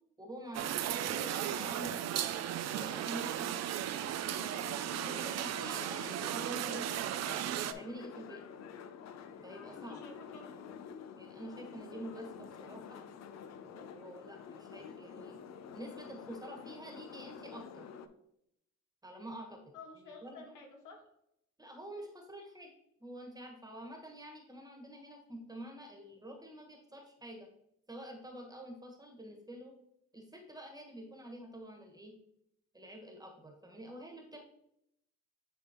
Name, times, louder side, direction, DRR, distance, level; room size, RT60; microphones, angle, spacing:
voice 1, 0.2-3.6 5.0-6.9 7.7-8.4 9.4-10.0 11.2-13.0 13.6-15.5 15.7-17.9 19.0-19.6 20.0-20.5 21.6-22.7 23.0-27.5 27.9-29.7 30.1-32.1 32.7-34.4, right 1 dB, 15° right, 1 dB, 1.5 m, -47 dB
sound 1, 0.5-7.7, right 11 dB, 60° right, 0.5 m, -36 dB
sound 2, 4.0-18.1, left 7 dB, 60° left, 0.6 m, -49 dB
voice 2, 9.7-10.5 19.7-21.0, left 4 dB, 80° left, 1 dB, 1.6 m, -51 dB
9.5 x 3.6 x 3.0 m, 0.77 s
cardioid pair, 90°, 30 cm